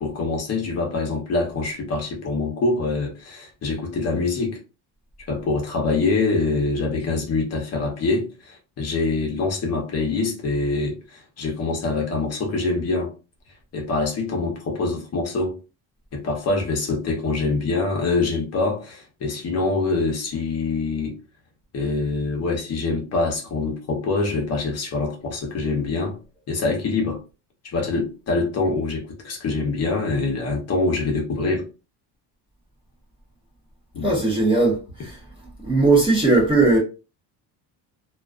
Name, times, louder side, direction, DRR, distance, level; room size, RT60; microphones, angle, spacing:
voice 1, 0.0-4.6 5.3-13.1 13.7-15.5 16.1-21.1 21.7-26.2 26.5-27.2 27.7-31.6 33.9-34.2, left 3 dB, 40° left, 0.7 m, -25 dB
voice 2, 34.0-35.2 35.6-36.8, right 3 dB, 15° right, 0.5 m, -18 dB
2.3 x 2.3 x 2.3 m
cardioid pair, 155°, 41 cm